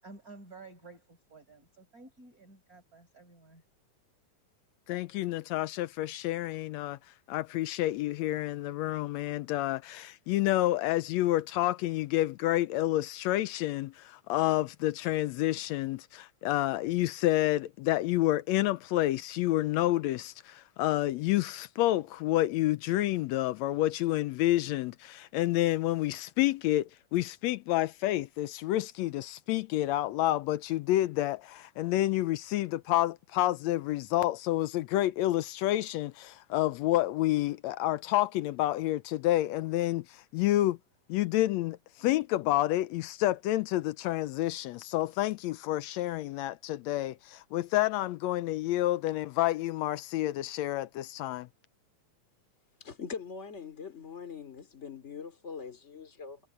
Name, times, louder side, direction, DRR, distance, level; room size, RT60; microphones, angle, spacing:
voice 1, 0.0-3.6, right 3 dB, 30° right, 6.1 m, -52 dB
voice 2, 4.9-7.0 7.3-40.8 41.1-51.5, left 15 dB, 80° left, 1.7 m, -29 dB
voice 3, 52.8-56.4, left 6 dB, 25° left, 2.9 m, -42 dB
omnidirectional pair, 3.4 m